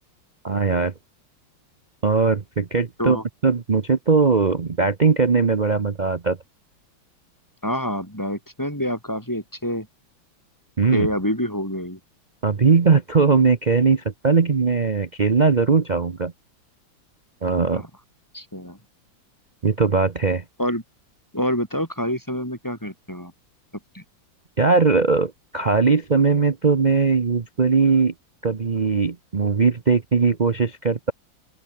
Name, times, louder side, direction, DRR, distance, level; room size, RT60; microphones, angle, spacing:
voice 1, 0.4-0.9 2.0-3.2 3.4-6.4 10.8-11.1 12.4-16.3 17.4-17.8 19.6-20.4 24.6-28.1 28.4-31.1, right 4 dB, 55° right, 0.5 m, -19 dB
voice 2, 7.6-9.9 10.9-12.0 17.7-17.9 18.3-18.8 20.6-20.8 21.3-23.3 23.9-24.0, equal, 10° left, 7.5 m, -27 dB
open air
omnidirectional pair, 2.2 m